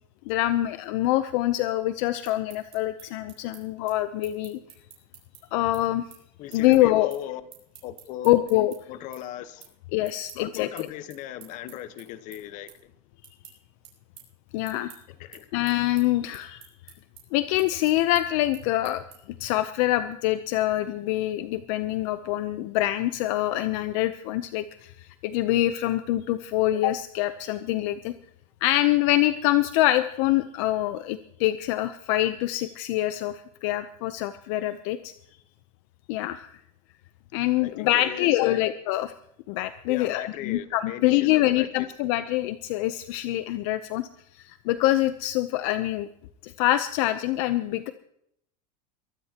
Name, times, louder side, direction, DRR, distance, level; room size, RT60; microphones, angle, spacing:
voice 1, 0.3-4.6 5.5-6.0 6.5-7.1 8.2-8.7 9.9-10.9 14.5-14.9 15.5-16.6 17.3-19.0 19.4-28.1 28.6-35.1 36.1-36.6 37.3-39.1 39.5-44.1 44.3-46.1 46.4-47.9, left 15 dB, 60° left, 0.7 m, -25 dB
sound 1, 2.2-8.8 9.1-9.7 10.0-19.4, right 10 dB, 35° right, 6.8 m, -50 dB
voice 2, 6.4-7.4 7.8-8.4 8.9-9.7 10.3-12.9 15.2-15.5 37.6-38.7 39.9-41.9, left 12 dB, 45° left, 1.1 m, -38 dB
23.0 x 15.0 x 2.9 m
supercardioid pair, 150°, 18 cm